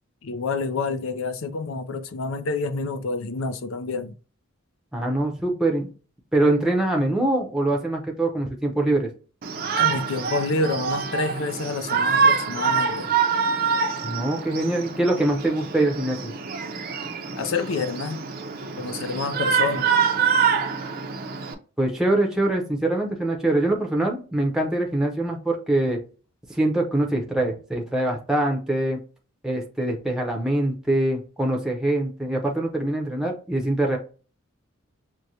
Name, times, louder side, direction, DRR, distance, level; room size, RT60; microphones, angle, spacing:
voice 1, 0.2-4.2 9.7-13.1 17.4-18.2 18.8-19.9, left 3 dB, 75° left, 0.5 m, -28 dB
voice 2, 4.9-5.9 6.3-9.1 14.0-16.3 21.8-26.0 26.5-29.0 29.4-34.0, right 1 dB, 5° right, 0.7 m, -23 dB
Shout, 9.4-21.5, right 6 dB, 45° right, 0.5 m, -25 dB
6.1 x 2.2 x 2.7 m
head